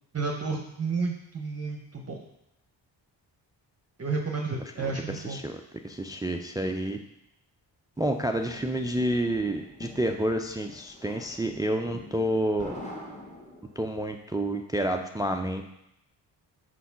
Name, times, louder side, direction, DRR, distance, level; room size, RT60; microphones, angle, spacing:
voice 1, 0.1-2.2 4.0-5.4, right 4 dB, 35° right, 1 dB, 0.8 m, -31 dB
voice 2, 4.8-5.6 5.8-7.0 8.0-12.8 13.8-15.6, right 1 dB, 10° right, 5 dB, 0.4 m, -29 dB
sound 1, 8.1-14.0, left 1 dB, 15° left, 1.6 m, -45 dB
4.7 x 4.2 x 5.7 m, 0.82 s
cardioid pair, 60°, 44 cm